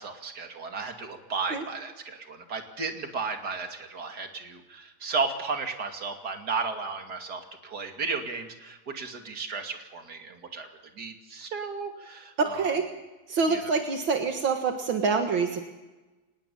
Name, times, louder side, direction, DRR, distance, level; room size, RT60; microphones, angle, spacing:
voice 1, 0.0-10.7 11.0-12.7 13.5-13.7, right 4 dB, 50° right, 4 dB, 3.0 m, -34 dB
voice 2, 12.4-12.9 13.3-15.6, right 4 dB, 75° right, 4 dB, 2.4 m, -26 dB
25.0 x 20.0 x 7.2 m, 1.1 s
omnidirectional pair, 2.2 m